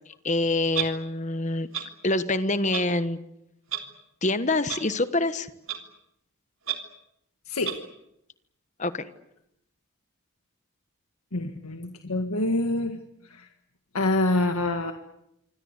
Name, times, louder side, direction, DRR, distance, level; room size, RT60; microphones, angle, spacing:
voice 1, 0.2-1.7 2.0-3.2 4.2-5.5 8.8-9.1, left 2 dB, 35° left, 12 dB, 1.3 m, -25 dB
Clock, 0.7-0.9 1.7-1.8 2.7-2.8 3.7-3.8 4.7-4.8 5.7-5.8 6.7-6.8 7.6-7.8, right 11 dB, 70° right, 3.3 m, -29 dB
voice 2, 7.5-7.8 11.3-13.5 13.9-14.9, left 2 dB, 90° left, 5 dB, 1.8 m, -26 dB
26.0 x 25.5 x 8.2 m, 0.80 s
head